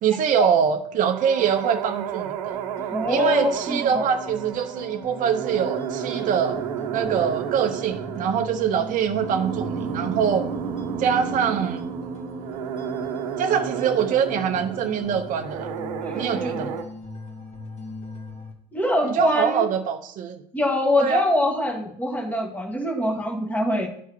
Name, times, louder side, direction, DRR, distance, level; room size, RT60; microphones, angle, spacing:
voice 1, 0.0-2.6 3.1-6.6 6.9-10.5 11.0-11.9 13.4-15.7 16.2-16.8 19.0-20.4 21.0-21.2, right 7 dB, 40° right, 6 dB, 0.6 m, -24 dB
sound 1, 1.0-16.8, right 7 dB, 75° right, 0.8 m, -31 dB
sound 2, 2.5-18.5, left 3 dB, 30° left, 1.7 m, -41 dB
voice 2, 2.9-4.1 16.0-16.7 18.7-19.6 20.5-23.9, left 1 dB, 10° left, 2 dB, 1.4 m, -24 dB
11.5 x 4.7 x 2.7 m, 0.64 s
hypercardioid pair, 75°, 21 cm